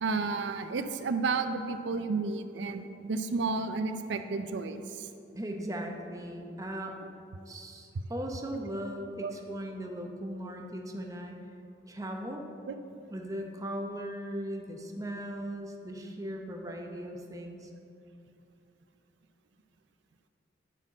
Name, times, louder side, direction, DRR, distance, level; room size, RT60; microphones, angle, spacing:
voice 1, 0.0-5.1 9.2-9.3 12.7-12.8, right 4 dB, 80° right, 8 dB, 0.5 m, -32 dB
voice 2, 5.3-6.9 7.5-11.4 11.9-12.4 13.1-17.7, right 1 dB, 20° right, 2 dB, 0.8 m, -38 dB
9.8 x 4.4 x 7.3 m, 2.6 s
head